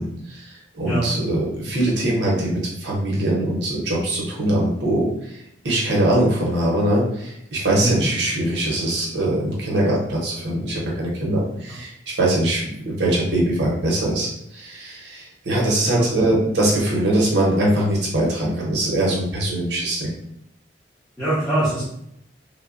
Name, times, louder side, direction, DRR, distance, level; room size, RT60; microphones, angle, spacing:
voice 1, 0.0-5.4 5.6-20.1, right 1 dB, 70° right, -4 dB, 0.7 m, -22 dB
voice 2, 0.8-1.1 7.7-8.0 15.9-16.0 21.2-21.8, right 2 dB, 5° left, -13 dB, 0.8 m, -23 dB
3.0 x 2.1 x 2.4 m, 0.76 s
head